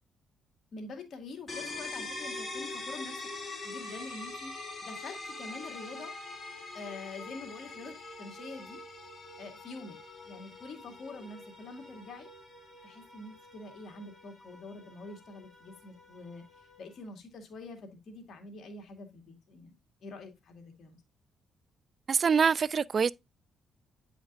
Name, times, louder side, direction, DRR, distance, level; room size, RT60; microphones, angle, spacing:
voice 1, 0.7-3.2 3.6-4.6 4.8-6.1 6.7-8.8 9.4-12.3 12.8-16.5 16.8-19.7 20.0-21.0, left 3 dB, 60° left, 2.0 m, -46 dB
sound 1, 1.5-17.0, left 2 dB, 30° left, 3.0 m, -44 dB
voice 2, 22.1-23.1, right 6 dB, 45° right, 0.3 m, -25 dB
8.9 x 5.1 x 2.6 m
cardioid pair, 90°, 0 cm